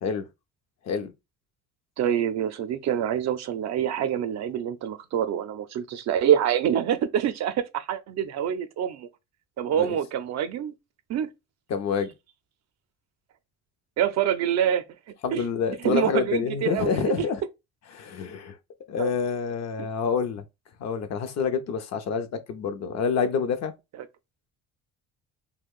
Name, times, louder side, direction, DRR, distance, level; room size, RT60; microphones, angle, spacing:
voice 1, 2.0-9.1 9.6-10.7 11.1-11.3 14.0-14.8 15.3-15.4 15.8-16.9 17.2-17.3 19.0-19.2 19.8-19.9 24.0-24.1, right 9 dB, 60° right, 0.5 m, -26 dB
voice 2, 11.7-12.1 15.2-17.4 17.9-18.5 18.9-20.4 20.8-23.7, left 6 dB, 60° left, 0.6 m, -27 dB
2.4 x 2.2 x 3.5 m
supercardioid pair, 75°, 30 cm